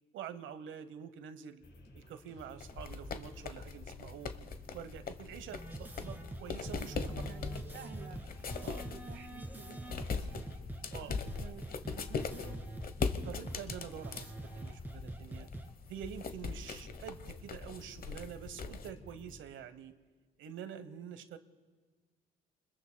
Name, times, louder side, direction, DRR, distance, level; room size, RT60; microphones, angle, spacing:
voice 1, 0.1-1.6 1.9-4.3 4.7-7.2 8.6-8.9 10.9-11.1 13.0-15.5 15.9-19.9 20.4-21.4, right 8 dB, 80° right, 11 dB, 1.1 m, -46 dB
sound 1, 1.6-19.4, left 1 dB, 65° left, 5.4 m, -54 dB
sound 2, 2.6-18.9, left 5 dB, 50° left, 1.0 m, -41 dB
sound 3, 5.5-15.7, right 2 dB, 10° right, 1.8 m, -45 dB
voice 2, 7.3-8.4 8.9-10.4 11.1-12.6, right 6 dB, 60° right, 8 dB, 1.4 m, -52 dB
29.0 x 21.0 x 2.3 m, 1.4 s
cardioid pair, 90°, 20 cm